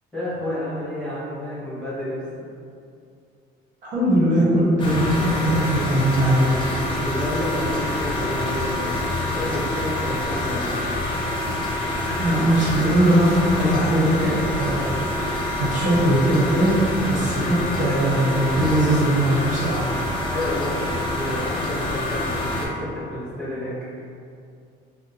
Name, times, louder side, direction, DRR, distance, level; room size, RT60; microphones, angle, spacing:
voice 1, 0.1-2.4 6.8-10.7 20.3-24.0, left 1 dB, 5° left, -13 dB, 1.0 m, -30 dB
voice 2, 3.8-6.5 11.9-14.3 14.6-19.8, right 1 dB, 45° right, -8 dB, 0.9 m, -20 dB
sound 1, 4.8-22.7, left 1 dB, 25° left, 0.5 m, -26 dB
2.7 x 2.2 x 3.9 m, 2.4 s
cardioid pair, 165°, 18 cm